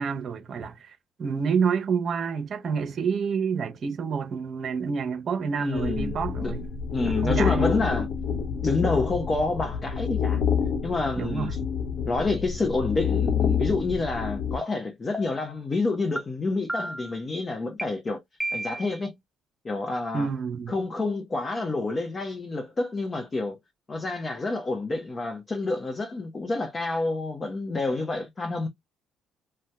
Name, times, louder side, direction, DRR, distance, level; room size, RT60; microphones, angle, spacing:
voice 1, 0.0-6.7 7.1-7.8 11.2-11.5 20.1-20.7, right 6 dB, 55° right, 0.8 m, -28 dB
voice 2, 5.6-6.1 6.4-6.6 6.9-8.1 8.6-10.4 10.8-11.6 12.0-18.2 18.5-19.2 19.6-20.3 20.7-23.6 23.9-28.7, left 3 dB, 35° left, 0.8 m, -28 dB
sound 1, 5.7-14.6, left 7 dB, 70° left, 0.8 m, -28 dB
sound 2, 14.6-14.7 15.1-15.5 16.2-16.3 16.7-17.2 17.8-17.9 18.4-19.0, right 1 dB, ahead, 0.8 m, -32 dB
2.8 x 2.2 x 3.4 m
supercardioid pair, 70°, 0 cm